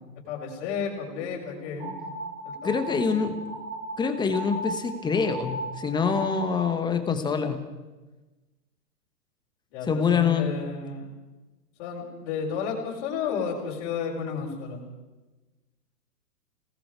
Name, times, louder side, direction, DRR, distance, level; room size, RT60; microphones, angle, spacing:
voice 1, 0.3-1.9 2.5-3.0 9.7-11.1 11.8-14.8, left 6 dB, 35° left, -4 dB, 5.4 m, -32 dB
sound 1, 1.8-6.7, right 1 dB, 30° right, 4.1 m, -36 dB
voice 2, 2.6-3.3 4.0-7.6 9.9-10.5, left 6 dB, 10° left, 8 dB, 1.4 m, -25 dB
29.0 x 19.5 x 4.8 m, 1.1 s
hypercardioid pair, 140°, 49 cm